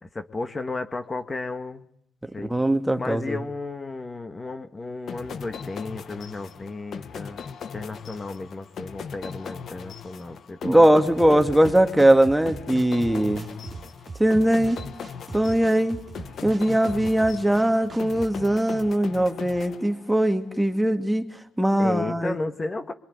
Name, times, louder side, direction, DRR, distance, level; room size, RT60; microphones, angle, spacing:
voice 1, 0.0-1.9 2.3-2.5 3.0-10.9 21.8-22.9, left 3 dB, 25° left, 7 dB, 2.0 m, -33 dB
voice 2, 2.5-3.4 10.6-13.4 14.2-14.8 15.3-16.0 16.4-21.3 21.6-22.4, right 1 dB, 5° right, 7 dB, 2.4 m, -20 dB
sound 1, 5.1-20.4, left 7 dB, 60° left, 1.8 m, -39 dB
sound 2, 11.2-18.4, right 4 dB, 35° right, 3.3 m, -41 dB
24.5 x 22.5 x 9.8 m, 0.68 s
cardioid pair, 90°, 0 cm